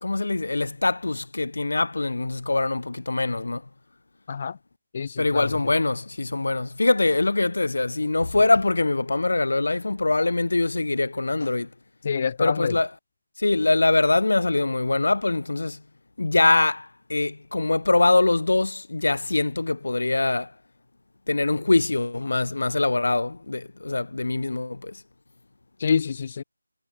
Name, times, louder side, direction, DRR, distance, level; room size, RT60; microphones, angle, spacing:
voice 1, 0.0-3.6 5.2-11.7 12.4-12.9 13.4-15.8 16.2-20.5 21.3-24.9, left 2 dB, 65° left, 1.5 m, -23 dB
voice 2, 4.9-5.6 12.0-12.8 25.8-26.4, left 6 dB, 30° left, 0.9 m, -26 dB
figure-of-eight pair, 170°, 0 cm